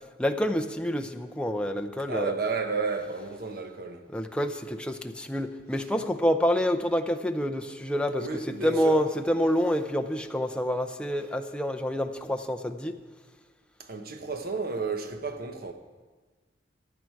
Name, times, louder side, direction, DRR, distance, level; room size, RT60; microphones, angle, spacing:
voice 1, 0.2-2.3 4.1-13.0, equal, 5° left, 0.6 m, -27 dB
voice 2, 2.1-4.1 8.2-9.0 13.8-15.7, right 4 dB, 55° right, 1.1 m, -32 dB
15.5 x 11.0 x 4.7 m
head